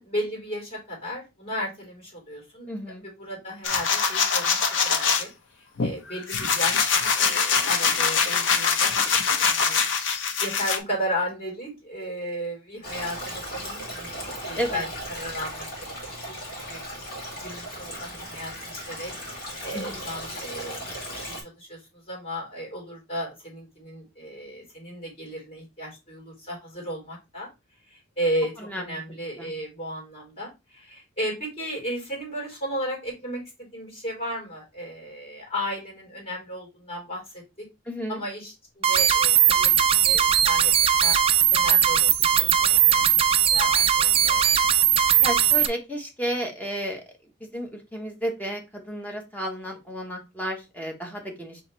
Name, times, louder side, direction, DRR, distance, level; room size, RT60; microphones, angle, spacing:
voice 1, 0.0-2.7 3.0-5.3 5.6-9.0 9.3-9.8 10.4-15.9 16.2-16.3 16.7-16.8 17.1-19.1 19.6-20.8 21.1-27.5 27.9-37.7 38.1-40.7 41.0-41.2 41.5-44.7, equal, 30° left, -2 dB, 3.1 m, -34 dB
voice 2, 2.7-3.0 14.5-14.8 19.7-20.0 28.6-29.0 29.4-29.5 37.9-38.2 45.2-47.0 47.5-51.6, equal, 10° left, 2 dB, 1.0 m, -32 dB
sound 1, 3.6-5.2 5.8-10.8, left 6 dB, 70° left, 0.7 m, -23 dB
Stream, 12.8-21.4, equal, 50° left, 1.9 m, -36 dB
sound 2, 38.8-45.7, right 9 dB, 30° right, 0.3 m, -19 dB
4.1 x 3.0 x 4.3 m, 0.25 s
head